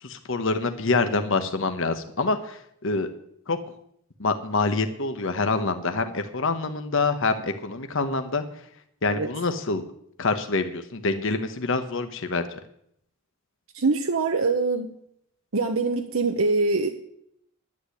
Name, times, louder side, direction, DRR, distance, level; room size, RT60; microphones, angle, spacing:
voice 1, 0.0-3.1 3.5-3.6 4.2-8.4 9.0-9.8 10.2-12.6, left 3 dB, 65° left, 8 dB, 1.1 m, -26 dB
voice 2, 13.7-14.9 15.5-16.9, right 3 dB, 80° right, 5 dB, 1.0 m, -23 dB
11.0 x 8.5 x 9.8 m, 0.72 s
head